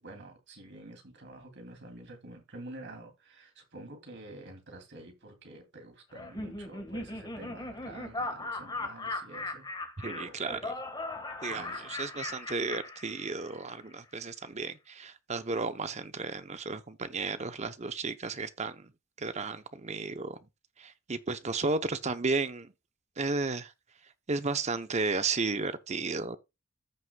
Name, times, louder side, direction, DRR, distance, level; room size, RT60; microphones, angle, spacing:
voice 1, 0.0-9.7 10.0-10.8 11.5-12.0, right 2 dB, 55° right, 2.8 m, -48 dB
Laughter, 6.1-13.6, left 2 dB, 20° left, 1.6 m, -38 dB
voice 2, 10.0-10.7 11.4-18.9 19.2-20.4 20.8-22.7 23.2-23.7 24.3-26.4, right 3 dB, 30° right, 0.8 m, -33 dB
14.5 x 6.3 x 2.3 m
head